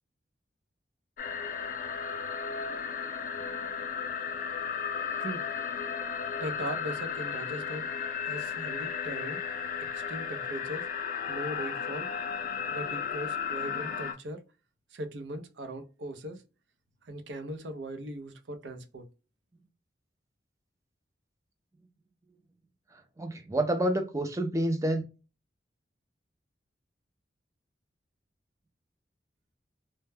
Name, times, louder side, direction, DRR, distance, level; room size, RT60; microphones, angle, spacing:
sound 1, 1.2-14.1, left 6 dB, 50° left, 0.4 m, -34 dB
voice 1, 6.4-7.9 8.2-9.4 9.8-10.9 11.3-12.1 12.7-14.4 14.9-16.4 17.0-19.1, right 1 dB, 75° right, 0.5 m, -39 dB
voice 2, 22.9-25.0, right 1 dB, 15° right, 0.4 m, -29 dB
2.1 x 2.1 x 3.2 m
head